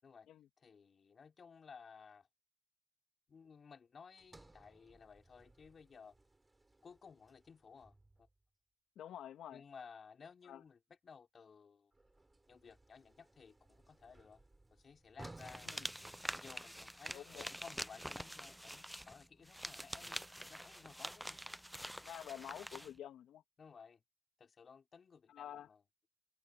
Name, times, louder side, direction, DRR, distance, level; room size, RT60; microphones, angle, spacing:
voice 1, 0.6-2.3 3.3-6.2 6.8-8.3 9.5-11.9 12.5-14.4 14.7-15.7 16.3-21.4 23.6-24.0 24.4-25.8, left 6 dB, 50° left, 6.2 m, -57 dB
Sliding door, 4.2-8.4 11.9-16.9, right 2 dB, 20° right, 4.9 m, -60 dB
voice 2, 9.0-9.6 10.5-10.6 15.7-15.9 17.1-17.4 22.0-23.4 25.3-25.7, left 10 dB, 70° left, 2.5 m, -49 dB
sound 1, 15.4-22.9, equal, ahead, 1.0 m, -46 dB
open air
supercardioid pair, 55°, 0 cm